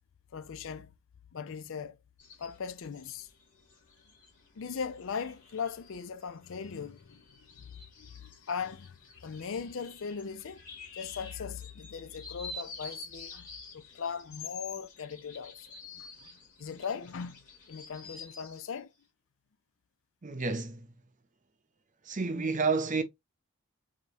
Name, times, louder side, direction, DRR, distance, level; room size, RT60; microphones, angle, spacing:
voice 1, 0.3-0.9 1.3-2.0 2.4-3.3 4.5-7.2 7.5-10.6 10.9-13.5 13.7-15.7 15.9-16.3 16.6-17.4 17.7-18.9, left 6 dB, 60° left, 0.5 m, -39 dB
sound 1, 2.2-18.8, left 3 dB, 35° left, 2.6 m, -50 dB
voice 2, 20.2-20.9 22.0-23.0, right 4 dB, 35° right, 0.7 m, -30 dB
4.9 x 2.8 x 2.7 m
head